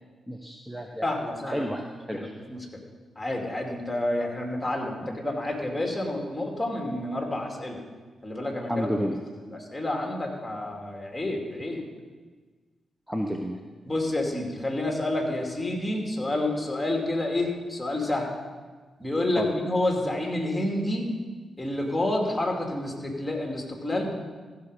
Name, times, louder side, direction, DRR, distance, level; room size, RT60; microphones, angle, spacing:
voice 1, 0.3-1.1 1.5-2.3 8.7-9.2 13.1-13.6 19.4-19.5, equal, 5° right, 3 dB, 1.0 m, -31 dB
voice 2, 1.0-1.7 2.1-2.7 3.2-7.8 8.2-8.9 9.5-11.8 13.9-18.3 19.0-21.1 21.6-24.1, left 1 dB, 10° left, 1 dB, 2.7 m, -29 dB
15.0 x 6.5 x 5.1 m, 1.4 s
supercardioid pair, 45°, 0 cm